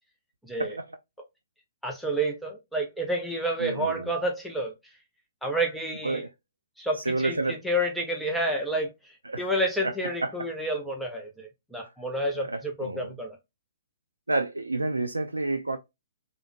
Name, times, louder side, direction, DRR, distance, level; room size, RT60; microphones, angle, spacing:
voice 1, 0.4-0.8 1.8-4.7 5.4-6.2 6.8-13.4, right 1 dB, ahead, 0.5 m, -29 dB
voice 2, 3.6-4.1 6.0-6.3 7.1-7.6 9.3-9.4 9.8-10.3 12.4-13.2 14.3-15.8, right 2 dB, 80° right, 0.3 m, -29 dB
3.3 x 2.1 x 3.0 m
figure-of-eight pair, 120°, 0 cm